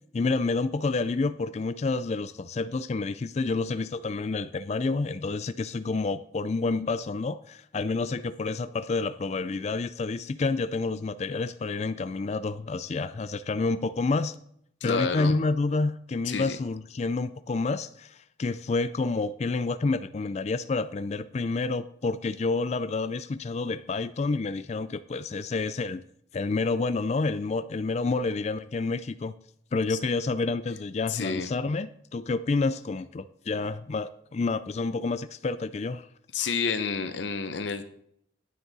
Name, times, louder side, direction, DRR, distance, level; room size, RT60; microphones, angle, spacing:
voice 1, 0.1-14.4 14.8-26.0 26.3-29.3 29.7-36.1 36.4-36.5, left 3 dB, 35° left, 12 dB, 0.3 m, -29 dB
voice 2, 14.8-15.3 16.3-16.6 29.9-30.0 31.1-31.5 36.3-37.9, left 5 dB, 65° left, 9 dB, 0.7 m, -29 dB
9.8 x 9.5 x 4.1 m, 0.70 s
head